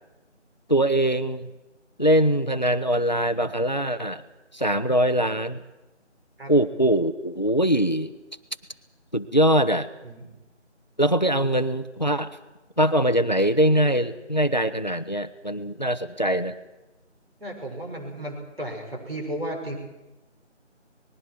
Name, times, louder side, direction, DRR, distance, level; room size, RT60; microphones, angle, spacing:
voice 1, 0.7-1.5 2.0-4.2 4.5-5.6 6.5-8.1 9.1-9.9 11.0-12.3 12.8-16.6, right 1 dB, 40° left, 12 dB, 0.8 m, -22 dB
voice 2, 17.4-19.8, right 1 dB, 55° right, 1 dB, 6.3 m, -34 dB
27.5 x 20.5 x 4.7 m, 1.0 s
figure-of-eight pair, 180°, 36 cm